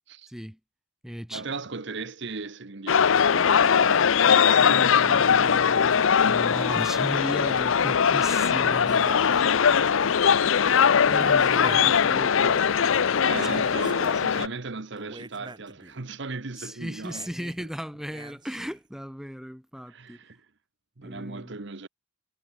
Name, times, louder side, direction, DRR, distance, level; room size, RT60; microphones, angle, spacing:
voice 1, 0.3-0.6 1.0-1.5 4.5-13.7 14.5-14.6 16.6-20.2 21.0-21.6, equal, ahead, 1.3 m, -37 dB
voice 2, 1.3-4.1 4.4-5.9 13.2-17.3 17.6-17.7 19.9-20.5 21.0-21.9, right 3 dB, 55° right, 1.1 m, -37 dB
sound 1, 2.9-14.5, left 7 dB, 70° left, 0.6 m, -21 dB
sound 2, 7.1-7.7 8.7-9.6 9.9-10.0 11.1-12.6 13.5-14.4 14.9-16.0 17.0-17.6 18.1-18.9, right 2 dB, 20° right, 2.5 m, -43 dB
head